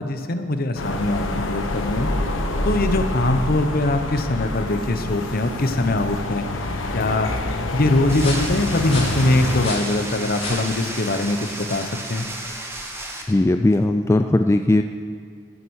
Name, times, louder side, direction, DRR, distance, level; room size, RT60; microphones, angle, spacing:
voice 1, 0.0-2.1 2.6-6.5 6.9-7.3 7.7-12.3, left 2 dB, 50° left, 8 dB, 0.9 m, -22 dB
sound 1, 0.8-9.7, left 2 dB, 85° left, 1.1 m, -27 dB
sound 2, 8.1-13.2, left 2 dB, 30° left, 4.1 m, -37 dB
sound 3, 8.1-13.2, right 1 dB, 15° right, 1.4 m, -33 dB
voice 2, 13.3-14.8, left 2 dB, 15° left, 6 dB, 0.3 m, -18 dB
15.0 x 7.9 x 6.3 m, 2.2 s
head